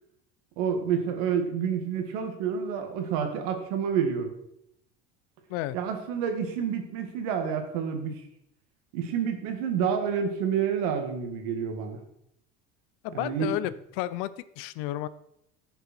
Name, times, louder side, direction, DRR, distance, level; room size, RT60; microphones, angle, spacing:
voice 1, 0.6-4.3 5.7-8.1 8.9-12.0 13.1-13.5, right 7 dB, 75° right, 6 dB, 2.0 m, -29 dB
voice 2, 13.0-14.3 14.6-15.1, left 14 dB, 60° left, 16 dB, 0.5 m, -31 dB
14.5 x 6.9 x 4.4 m, 0.77 s
cardioid pair, 175°, 19 cm